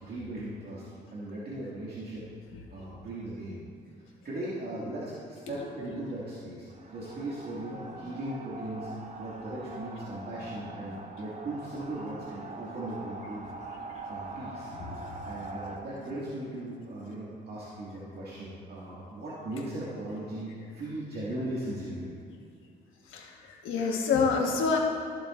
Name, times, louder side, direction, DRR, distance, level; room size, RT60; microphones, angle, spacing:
voice 1, 0.0-2.2 2.7-3.6 4.2-8.9 9.2-13.5 14.1-14.7 15.2-22.2, right 1 dB, 55° right, -9 dB, 2.1 m, -38 dB
sound 1, 6.7-15.8, right 2 dB, 35° right, 1.0 m, -43 dB
voice 2, 23.1-24.8, left 5 dB, 85° left, 0 dB, 1.4 m, -27 dB
14.0 x 7.3 x 2.5 m, 2.4 s
cardioid pair, 90°, 20 cm